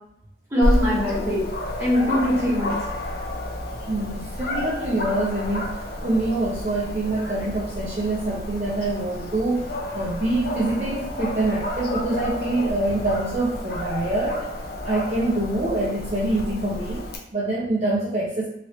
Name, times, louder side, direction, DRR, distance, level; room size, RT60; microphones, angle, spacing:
voice 1, 0.5-1.5 1.8-2.8, left 1 dB, 15° right, -9 dB, 1.4 m, -22 dB
Dog, 0.6-17.2, left 1 dB, 55° left, 0.5 m, -30 dB
voice 2, 3.7-9.7 9.9-14.5 14.8-18.5, right 2 dB, 35° right, -6 dB, 0.5 m, -25 dB
3.0 x 2.8 x 3.0 m, 0.78 s
head